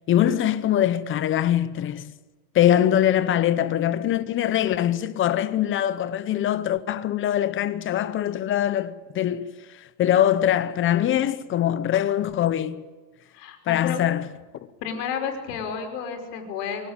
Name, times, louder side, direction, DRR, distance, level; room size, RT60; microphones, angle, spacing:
voice 1, 0.1-2.1 2.5-9.5 10.0-12.9 13.7-14.2, left 11 dB, 25° left, 0.8 m, -22 dB
voice 2, 13.3-14.0 14.8-16.9, left 7 dB, 80° left, 5.4 m, -31 dB
24.0 x 16.5 x 8.8 m
supercardioid pair, 155°, 47 cm